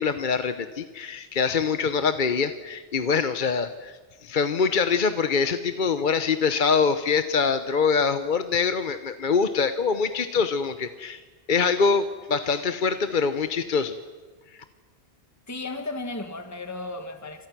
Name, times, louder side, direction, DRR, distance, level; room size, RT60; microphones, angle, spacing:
voice 1, 0.0-11.2 11.5-14.0, left 5 dB, 50° left, 10 dB, 1.0 m, -24 dB
voice 2, 15.5-17.5, left 2 dB, 15° left, 7 dB, 1.6 m, -34 dB
28.0 x 26.5 x 6.1 m, 1.4 s
omnidirectional pair, 1.2 m